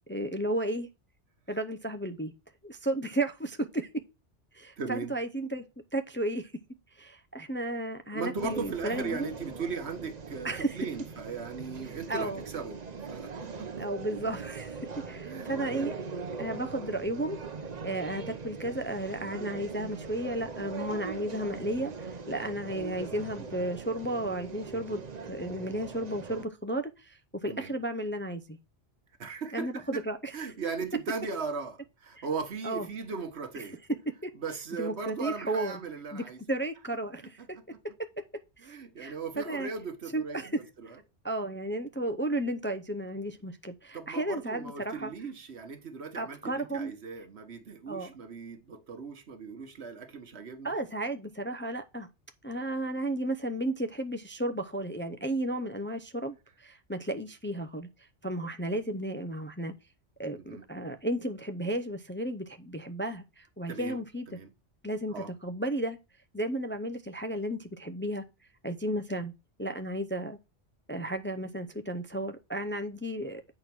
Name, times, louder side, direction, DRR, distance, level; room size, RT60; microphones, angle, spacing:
voice 1, 0.1-0.9 1.5-2.3 2.6-3.9 4.5-5.6 5.9-6.5 7.0-9.3 10.4-10.8 12.1-12.4 13.8-15.9 16.4-17.4 17.8-25.0 25.3-28.6 29.5-30.3 32.2-32.3 32.6-32.9 34.2-34.3 34.8-35.8 36.1-37.6 38.0-38.1 38.6-39.1 39.4-39.7 40.1-40.6 41.2-45.1 46.1-46.9 47.9-48.1 50.6-52.1 52.4-57.9 58.2-59.7 60.2-64.3 64.8-66.0 66.3-68.2 68.6-69.3 69.6-70.4 70.9-73.4, right 1 dB, 15° left, 0.4 m, -33 dB
voice 2, 4.8-5.1 8.1-13.9 14.9-15.9 27.5-27.7 29.2-30.0 30.3-33.8 34.3-36.4 37.2-37.7 38.6-41.0 43.9-50.7 60.3-60.7 63.7-64.0 64.3-64.5 65.1-65.3, right 5 dB, 65° right, 1.4 m, -38 dB
sound 1, 8.4-26.5, right 5 dB, 40° right, 0.9 m, -41 dB
8.6 x 4.4 x 6.0 m
omnidirectional pair, 1.2 m